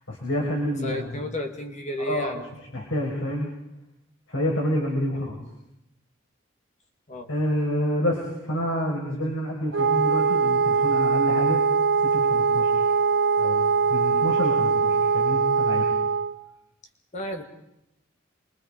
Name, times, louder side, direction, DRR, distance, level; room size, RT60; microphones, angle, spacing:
voice 1, 0.1-1.2 2.0-2.3 2.7-3.5 4.3-5.4 7.3-11.6 12.0-12.7 13.4-15.9, equal, 80° left, -2 dB, 5.5 m, -28 dB
voice 2, 0.8-2.5 7.1-7.3 17.1-17.4, left 1 dB, 35° left, 4 dB, 2.1 m, -32 dB
Wind instrument woodwind instrument, 9.7-16.4, right 5 dB, 75° right, 1.7 m, -22 dB
28.0 x 23.5 x 5.1 m, 0.85 s
head